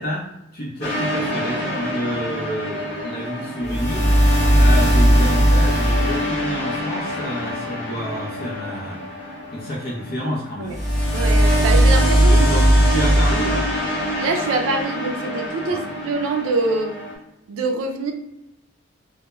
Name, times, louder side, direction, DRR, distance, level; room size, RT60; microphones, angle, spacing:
voice 1, 0.0-4.1 4.5-9.0 9.5-10.8 12.3-13.7 15.7-15.8, equal, 45° left, -3 dB, 0.5 m, -29 dB
sound 1, 0.8-10.3 10.6-17.1, equal, 30° left, 0.9 m, -20 dB
voice 2, 11.1-12.5 13.0-13.1 14.2-17.0 17.5-18.1, right 3 dB, 85° right, 4 dB, 0.3 m, -24 dB
2.2 x 2.0 x 2.9 m, 0.87 s
head